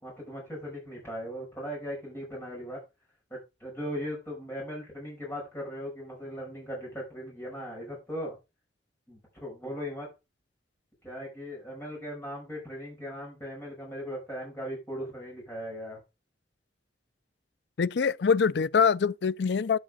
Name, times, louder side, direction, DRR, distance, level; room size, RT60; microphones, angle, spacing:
voice 1, 0.0-2.8 3.3-8.4 9.1-10.1 11.0-16.0, equal, 15° left, 6.1 m, -38 dB
voice 2, 17.8-19.8, left 6 dB, 70° left, 0.4 m, -24 dB
10.0 x 7.7 x 3.8 m
head